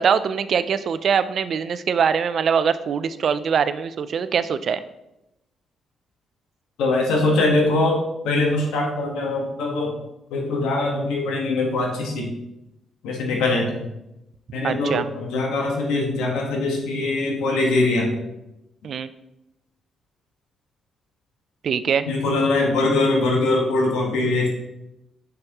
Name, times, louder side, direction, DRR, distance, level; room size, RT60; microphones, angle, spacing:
voice 1, 0.0-4.8 14.6-15.1 18.8-19.1 21.6-22.1, right 7 dB, 60° right, 13 dB, 0.4 m, -22 dB
voice 2, 6.8-10.0 10.3-12.3 13.0-13.9 14.5-18.1 22.0-24.5, left 2 dB, 85° left, 0 dB, 1.4 m, -22 dB
6.2 x 6.0 x 3.0 m, 0.89 s
supercardioid pair, 65°, 0 cm